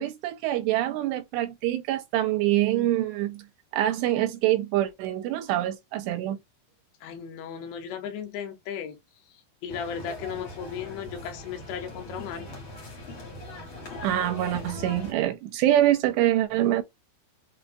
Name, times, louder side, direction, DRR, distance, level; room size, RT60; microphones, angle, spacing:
voice 1, 0.0-3.4 3.7-6.4 14.0-16.8, right 13 dB, 80° right, 2.8 m, -25 dB
voice 2, 7.0-9.0 9.6-12.6, left 8 dB, 85° left, 3.1 m, -36 dB
sound 1, 9.7-15.1, left 1 dB, 55° left, 1.4 m, -40 dB
6.6 x 2.5 x 2.3 m
omnidirectional pair, 5.0 m